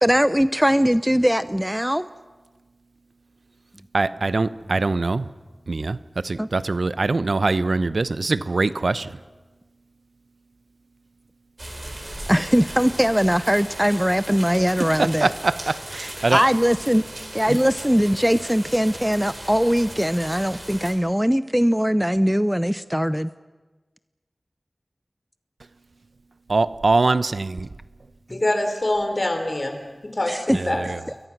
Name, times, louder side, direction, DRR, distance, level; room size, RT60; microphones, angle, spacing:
voice 1, 0.0-2.1 6.4-6.5 12.3-15.3 16.3-17.0 17.3-23.3 28.3-28.4 30.3-30.6, equal, 5° right, 13 dB, 0.6 m, -20 dB
voice 2, 3.9-5.3 5.7-6.0 6.2-9.2 15.0-16.4 17.5-17.6 26.5-27.7 30.5-31.0, right 3 dB, 80° right, 14 dB, 0.7 m, -23 dB
sound 1, 11.6-20.9, right 1 dB, 35° right, 5.2 m, -37 dB
voice 3, 28.3-29.8 30.0-30.9, left 1 dB, 50° left, 6 dB, 3.8 m, -24 dB
29.0 x 22.5 x 6.1 m, 1.3 s
wide cardioid pair, 45°, 0 cm